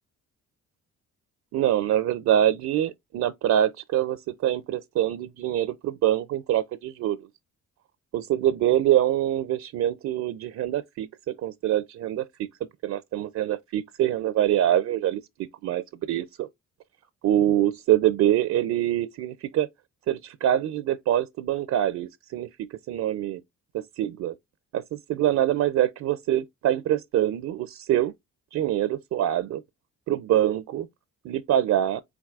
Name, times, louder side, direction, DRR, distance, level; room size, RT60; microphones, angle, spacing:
voice 1, 1.5-7.2 8.1-11.1 11.4-12.2 12.8-15.2 15.6-16.5 17.2-19.7 20.1-22.5 22.9-23.4 23.7-24.3 24.7-28.1 28.5-29.6 30.1-30.9 31.2-32.0, right 12 dB, 65° right, 0.5 m, -24 dB
4.6 x 3.9 x 2.4 m
cardioid pair, 90°, 30 cm